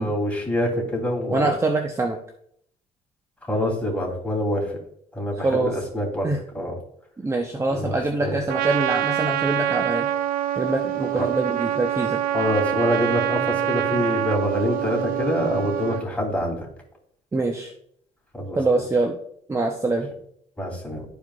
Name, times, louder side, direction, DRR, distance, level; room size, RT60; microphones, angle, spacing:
voice 1, 0.0-1.5 3.5-4.7 5.1-6.3 6.5-6.7 7.7-8.4 11.2-11.3 12.3-16.7 18.3-18.6 20.6-21.0, left 1 dB, 10° left, -2 dB, 3.0 m, -25 dB
voice 2, 1.3-2.2 5.4-5.8 6.2-6.4 7.2-10.1 10.6-12.2 17.3-17.7 18.5-19.1 19.5-20.1, right 2 dB, 20° right, 3 dB, 0.7 m, -24 dB
Trumpet, 8.5-16.1, right 12 dB, 80° right, 0.5 m, -25 dB
12.5 x 4.8 x 2.4 m, 0.68 s
cardioid pair, 90°, 15 cm